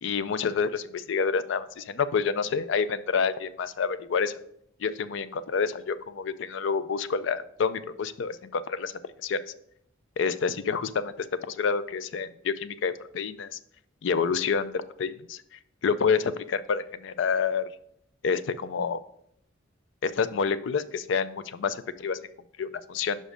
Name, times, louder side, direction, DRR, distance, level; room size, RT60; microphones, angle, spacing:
voice 1, 0.0-4.3 4.8-8.9 9.2-9.4 10.2-13.6 14.0-15.4 15.8-17.7 18.2-19.0 20.0-22.2 22.6-23.2, left 5 dB, 65° left, 14 dB, 0.4 m, -28 dB
5.5 x 5.1 x 5.0 m, 0.71 s
head